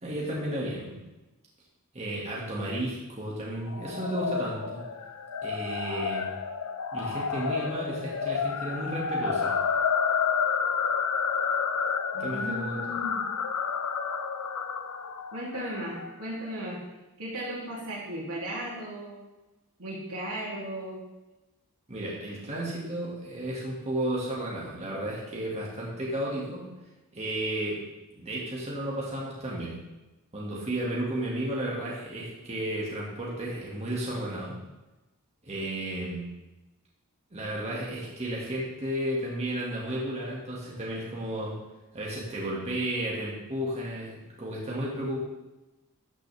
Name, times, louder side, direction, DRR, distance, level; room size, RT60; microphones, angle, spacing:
voice 1, 0.0-1.0 1.9-4.8 5.4-6.3 6.9-9.5 12.2-13.0 21.9-26.7 27.1-27.8 28.1-29.8 30.3-34.6 35.4-36.3 37.3-41.6 41.9-45.2, right 1 dB, 30° right, -5 dB, 2.0 m, -33 dB
sound 1, 3.7-16.1, left 6 dB, 80° left, 0.7 m, -30 dB
voice 2, 12.1-13.2 15.3-16.8 17.2-19.2 19.8-21.0, right 1 dB, 80° right, -4 dB, 2.9 m, -36 dB
13.0 x 6.3 x 3.4 m, 1.1 s
head